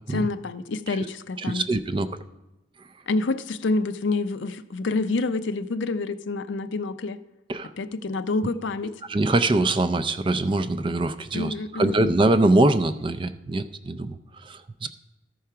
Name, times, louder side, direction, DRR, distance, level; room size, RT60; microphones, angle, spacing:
voice 1, 0.1-1.6 3.1-7.2 7.8-8.9 11.3-12.1, left 3 dB, 65° left, 12 dB, 0.5 m, -27 dB
voice 2, 1.4-2.1 7.5-7.7 9.1-14.9, right 2 dB, 25° right, 11 dB, 0.4 m, -23 dB
13.5 x 4.6 x 5.7 m, 1.0 s
head